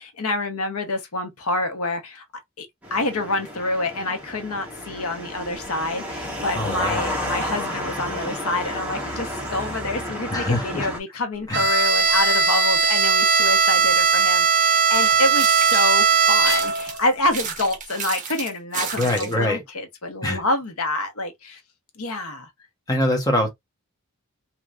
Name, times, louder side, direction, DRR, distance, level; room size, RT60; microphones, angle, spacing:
voice 1, 0.0-2.2 2.6-21.6 22.0-22.5, left 2 dB, 85° left, 0.9 m, -27 dB
sound 1, 2.8-11.0, equal, 5° right, 1.0 m, -31 dB
voice 2, 6.5-7.0 10.3-10.9 11.5-11.6 18.9-19.6 20.2-20.4 22.9-23.5, left 1 dB, 15° left, 1.0 m, -23 dB
Bowed string instrument, 11.5-16.9, right 5 dB, 50° right, 0.5 m, -18 dB
sound 2, 14.9-16.1 16.5-19.5, right 6 dB, 35° right, 0.9 m, -33 dB
3.3 x 2.9 x 2.4 m
head